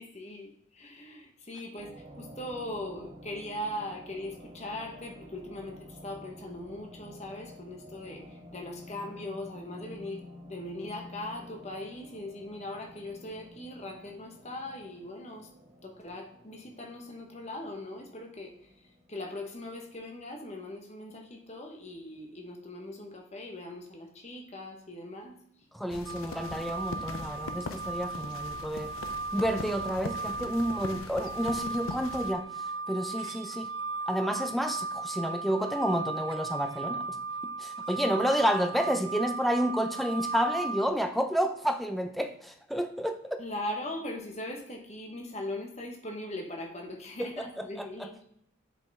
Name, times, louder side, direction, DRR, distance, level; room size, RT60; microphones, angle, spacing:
voice 1, 0.0-15.5 15.8-25.4 43.4-48.1, left 1 dB, 35° left, 2 dB, 1.1 m, -40 dB
sound 1, 1.7-20.4, equal, 25° right, 1.7 m, -51 dB
voice 2, 25.7-28.9 29.3-32.4 32.9-33.7 34.1-37.2 37.6-43.4 47.2-47.3 47.8-48.1, equal, ahead, 6 dB, 0.4 m, -30 dB
sound 2, 25.9-32.3, left 3 dB, 85° left, 0.6 m, -41 dB
sound 3, 26.1-40.9, right 4 dB, 60° right, 0.4 m, -37 dB
7.5 x 5.1 x 3.5 m, 0.74 s
head